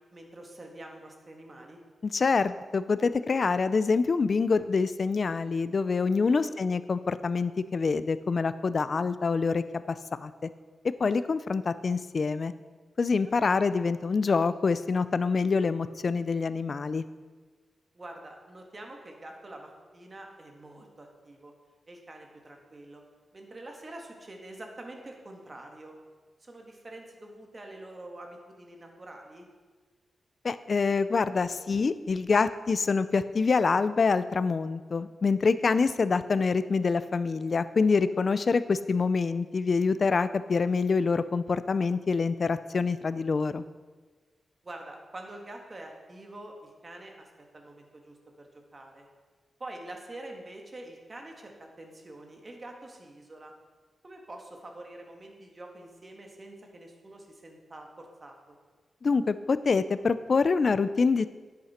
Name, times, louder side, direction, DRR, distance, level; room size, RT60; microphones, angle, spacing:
voice 1, 0.1-1.8 6.3-6.6 13.2-13.6 17.9-21.5 21.9-23.0 23.3-25.9 26.4-29.5 44.6-47.3 47.5-49.1 49.6-53.5 54.0-58.6, right 1 dB, 35° right, 2 dB, 1.8 m, -46 dB
voice 2, 2.0-10.0 10.2-10.3 10.8-12.5 13.0-17.0 30.4-43.6 59.0-61.3, left 4 dB, 50° left, 14 dB, 0.4 m, -26 dB
10.5 x 8.7 x 4.3 m, 1.4 s
cardioid pair, 85°, 0 cm